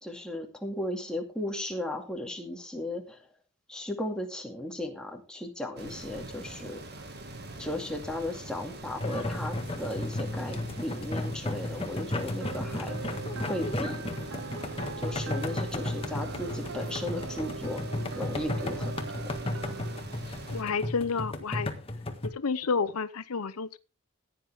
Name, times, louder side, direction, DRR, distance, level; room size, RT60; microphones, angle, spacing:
voice 1, 0.0-3.3 3.7-7.0 7.6-13.0 13.4-14.1 15.0-17.8 18.2-18.9 19.7-19.8, left 1 dB, 5° left, 2.2 m, -36 dB
sound 1, 5.8-20.6, right 2 dB, 45° right, 1.9 m, -43 dB
sound 2, 9.0-22.3, left 1 dB, 25° left, 1.6 m, -34 dB
sound 3, 12.4-20.0, right 5 dB, 60° right, 0.8 m, -41 dB
voice 2, 20.5-21.7 22.2-23.8, left 5 dB, 85° left, 0.8 m, -30 dB
16.0 x 9.8 x 3.6 m
head